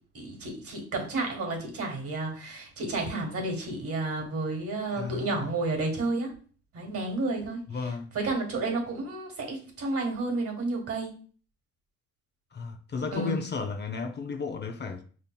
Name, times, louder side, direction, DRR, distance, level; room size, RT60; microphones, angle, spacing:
voice 1, 0.1-6.3 6.7-7.6 8.1-11.1 13.1-13.5, right 2 dB, 50° right, 1.5 m, -31 dB
voice 2, 4.9-5.5 7.7-8.1 12.5-15.0, left 4 dB, 35° left, 0.5 m, -34 dB
5.2 x 2.8 x 2.2 m
cardioid pair, 85°, 29 cm